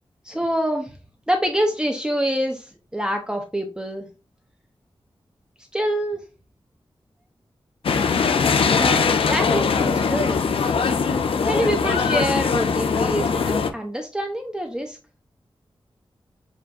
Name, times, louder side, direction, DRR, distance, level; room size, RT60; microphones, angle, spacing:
voice 1, 0.2-0.9 1.3-4.1 5.7-6.2 8.7-10.8 11.4-15.0, equal, 10° right, 2 dB, 0.6 m, -26 dB
sound 1, 7.8-13.7, left 5 dB, 75° left, 0.4 m, -21 dB
7.4 x 2.5 x 2.4 m, 0.33 s
wide cardioid pair, 100°, 10 cm